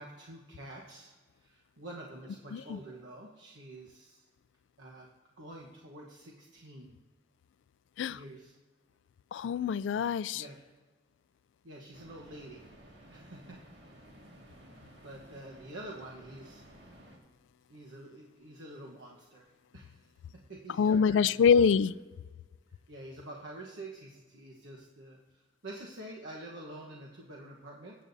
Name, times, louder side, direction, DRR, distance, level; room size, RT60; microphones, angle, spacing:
voice 1, 0.0-4.3 4.8-5.1 5.4-7.0 8.1-8.6 10.3-10.6 11.6-12.7 13.1-13.6 14.8-16.7 17.7-21.4 22.7-28.0, right 1 dB, 85° right, 1.2 m, -48 dB
voice 2, 9.3-10.4 20.8-21.9, left 6 dB, 75° left, 0.3 m, -25 dB
sound 1, 11.9-17.2, right 1 dB, 65° right, 1.9 m, -55 dB
18.5 x 8.5 x 2.7 m
head